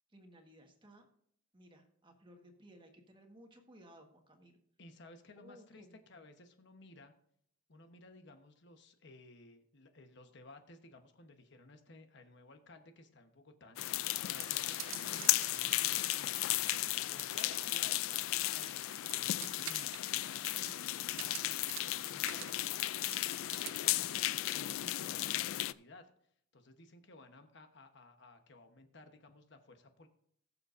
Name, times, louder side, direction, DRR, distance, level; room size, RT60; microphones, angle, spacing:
voice 1, 0.1-1.1 1.5-4.6 5.4-5.9, equal, 25° right, 3 dB, 1.5 m, -59 dB
voice 2, 4.8-7.1 7.7-16.8 17.1-26.1 26.5-30.1, left 2 dB, 60° left, 6 dB, 1.1 m, -57 dB
sound 1, 13.8-25.7, left 16 dB, 90° left, 0.3 m, -35 dB
sound 2, 14.3-24.3, right 12 dB, 80° right, 0.6 m, -50 dB
20.0 x 6.8 x 2.6 m, 0.69 s
head